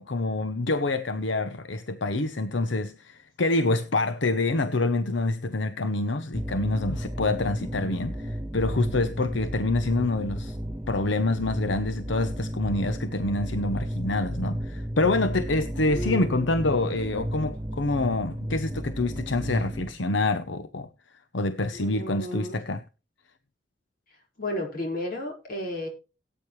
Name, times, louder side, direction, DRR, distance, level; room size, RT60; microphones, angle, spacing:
voice 1, 0.0-10.6 10.9-20.9 21.3-22.8, left 2 dB, 75° left, 0.8 m, -26 dB
sound 1, 6.3-19.9, equal, 20° right, 4.2 m, -33 dB
voice 2, 15.9-16.6 21.7-22.6 24.4-25.9, left 1 dB, 50° left, 4.9 m, -33 dB
18.0 x 9.1 x 3.2 m
head